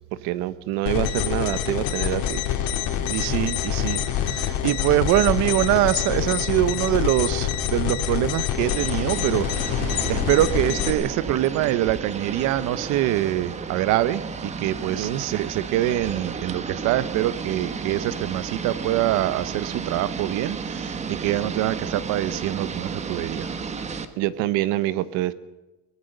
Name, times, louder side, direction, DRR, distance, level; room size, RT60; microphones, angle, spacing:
voice 1, 0.1-2.4 15.0-15.2 24.2-25.3, right 14 dB, 60° right, 1.1 m, -26 dB
sound 1, 0.9-10.9, left 10 dB, 55° left, 2.7 m, -26 dB
voice 2, 3.1-23.5, right 14 dB, 45° right, 0.8 m, -24 dB
sound 2, 8.6-24.1, right 5 dB, 15° right, 1.1 m, -32 dB
22.5 x 19.0 x 6.6 m
cardioid pair, 165°, 39 cm